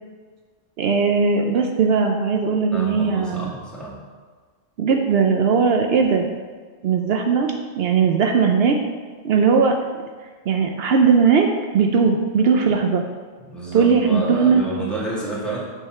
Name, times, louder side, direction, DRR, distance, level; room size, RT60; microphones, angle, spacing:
voice 1, 0.8-3.5 4.8-6.3 6.8-8.8 9.2-9.8 10.5-11.5 11.7-13.0 13.7-14.6, right 5 dB, 75° right, 3 dB, 0.8 m, -18 dB
voice 2, 2.7-3.9 13.5-15.6, right 2 dB, ahead, -7 dB, 1.7 m, -29 dB
8.0 x 3.8 x 4.4 m, 1.5 s
omnidirectional pair, 1.1 m